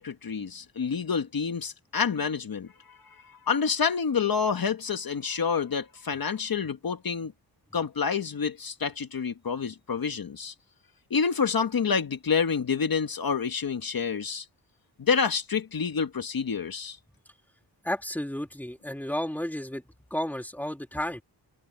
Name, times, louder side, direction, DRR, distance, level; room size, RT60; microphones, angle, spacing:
voice 1, 0.0-7.3 7.7-10.5 11.1-14.5 15.0-17.0, left 6 dB, 55° left, 1.5 m, -28 dB
voice 2, 17.8-19.8 20.1-21.2, left 1 dB, 5° left, 2.6 m, -32 dB
wide cardioid pair, 95°, 42 cm